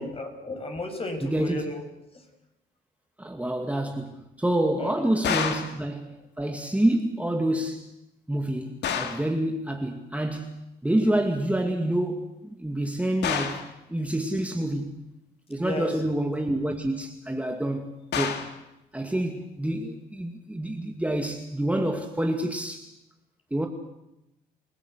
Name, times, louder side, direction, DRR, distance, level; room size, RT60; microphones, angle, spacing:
voice 1, 0.0-1.9 4.8-5.0 15.6-15.9, left 2 dB, 35° left, 6.4 m, -34 dB
voice 2, 1.2-1.6 3.2-7.9 8.3-15.0 15.5-18.5 18.9-22.9 23.5-23.7, right 1 dB, 10° right, 2.3 m, -28 dB
sound 1, 5.2-5.8 8.8-9.3 13.2-13.7 18.1-18.6, left 7 dB, 75° left, 2.6 m, -28 dB
29.0 x 16.5 x 8.1 m
cardioid pair, 85°, 18 cm